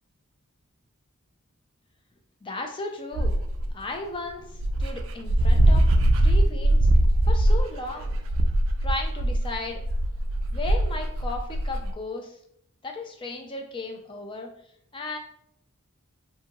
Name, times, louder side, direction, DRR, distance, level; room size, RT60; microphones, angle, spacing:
voice 1, 2.4-3.3 3.7-4.5 4.8-5.9 6.2-6.8 7.3-8.1 8.8-9.8 10.5-12.3 12.8-14.5 14.9-15.2, left 2 dB, 25° left, 3 dB, 0.3 m, -35 dB
Dog, 3.1-3.7 4.3-4.4 4.6-11.9, right 1 dB, 60° right, 0.3 m, -21 dB
2.9 x 2.6 x 2.3 m, 0.69 s
head